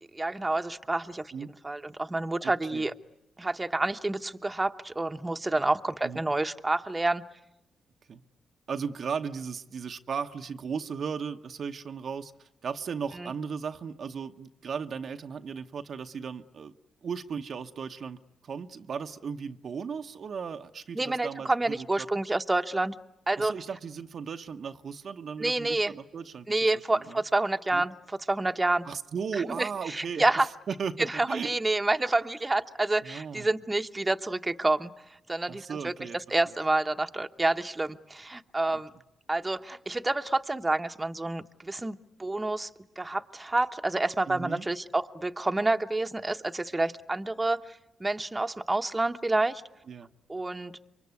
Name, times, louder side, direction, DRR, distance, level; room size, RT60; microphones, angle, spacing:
voice 1, 0.1-1.3 1.6-2.9 3.4-7.2 13.2-13.3 20.9-22.9 23.3-23.5 25.4-25.9 26.5-28.9 29.4-30.5 31.0-34.9 35.3-35.9 36.3-38.9 39.3-42.7 43.0-49.6 50.3-50.7, right 2 dB, 20° right, 7 dB, 1.0 m, -28 dB
voice 2, 2.4-2.9 6.0-6.2 8.1-8.2 8.7-16.7 17.0-22.1 23.4-26.7 27.1-27.2 27.7-27.8 28.8-30.3 30.7-31.6 33.0-33.5 35.5-36.4 44.3-44.7 49.9-50.1, right 6 dB, 60° right, 6 dB, 1.0 m, -36 dB
27.0 x 23.5 x 9.5 m, 0.85 s
supercardioid pair, 60°, 0 cm